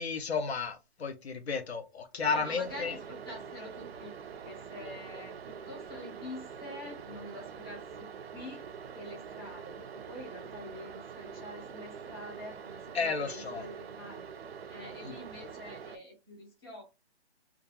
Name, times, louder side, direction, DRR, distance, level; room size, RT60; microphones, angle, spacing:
voice 1, 0.0-2.9 12.9-13.6 15.1-15.2, left 5 dB, 65° left, 0.6 m, -33 dB
sound 1, 2.2-16.0, right 6 dB, 65° right, 0.5 m, -45 dB
voice 2, 2.3-4.1 4.4-14.2 14.7-16.8, left 1 dB, 20° left, 0.6 m, -46 dB
2.3 x 2.2 x 3.1 m
hypercardioid pair, 165°, 34 cm